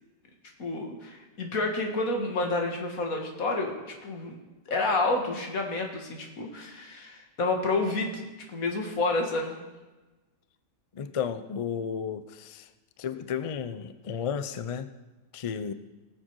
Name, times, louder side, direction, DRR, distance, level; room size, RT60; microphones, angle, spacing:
voice 1, 0.6-4.4 4.7-8.2 8.5-9.6, left 2 dB, 80° left, 2 dB, 2.1 m, -29 dB
voice 2, 10.9-12.7 13.0-14.9 15.3-15.7, left 7 dB, 55° left, 11 dB, 0.3 m, -33 dB
19.0 x 7.6 x 4.7 m, 1.2 s
omnidirectional pair, 1.4 m